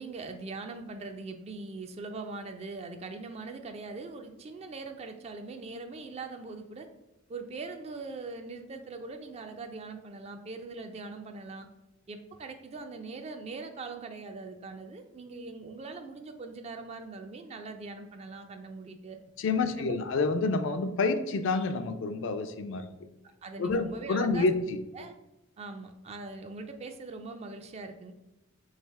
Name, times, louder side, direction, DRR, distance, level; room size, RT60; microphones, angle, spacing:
voice 1, 0.0-6.9 7.3-11.7 12.1-19.2 19.6-20.0 23.4-24.5 24.9-25.1 25.6-28.1, right 3 dB, 30° right, 7 dB, 0.3 m, -41 dB
voice 2, 19.4-22.9 23.6-24.8, left 3 dB, 65° left, 8 dB, 0.4 m, -28 dB
3.3 x 2.7 x 4.5 m, 0.98 s
head